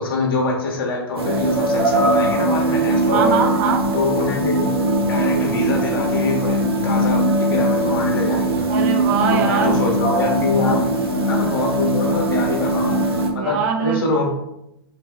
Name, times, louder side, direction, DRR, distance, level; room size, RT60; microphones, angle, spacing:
voice 1, 0.0-3.3 3.9-4.7 5.0-8.6 9.3-10.9 11.3-13.0 13.3-14.2, left 3 dB, 65° left, 0 dB, 1.4 m, -25 dB
sound 1, 1.2-13.3, right 1 dB, 75° right, 1.0 m, -20 dB
voice 2, 3.1-3.8 8.7-9.8 10.6-10.9 13.4-14.1, right 6 dB, 40° right, 4 dB, 0.8 m, -22 dB
6.5 x 3.3 x 2.3 m, 0.83 s
figure-of-eight pair, 105°, 13 cm